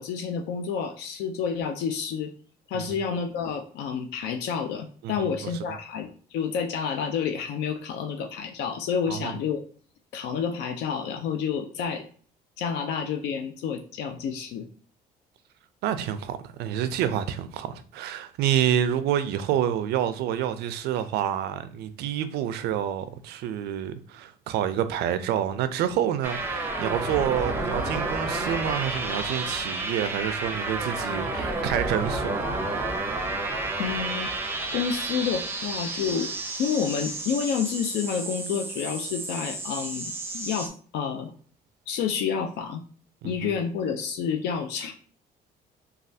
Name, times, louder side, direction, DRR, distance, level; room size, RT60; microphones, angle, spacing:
voice 1, 0.0-2.3 2.7-9.6 10.1-12.0 12.6-14.7 33.8-34.3 34.7-36.3 36.6-41.3 41.9-42.8 43.2-44.9, left 7 dB, 80° left, 0.4 m, -29 dB
voice 2, 5.0-5.8 9.1-9.4 15.8-32.5 43.2-43.5, right 10 dB, 75° right, 0.4 m, -28 dB
sound 1, 26.2-40.7, right 2 dB, 15° right, 0.5 m, -31 dB
3.2 x 2.3 x 2.6 m
cardioid pair, 110°, 17 cm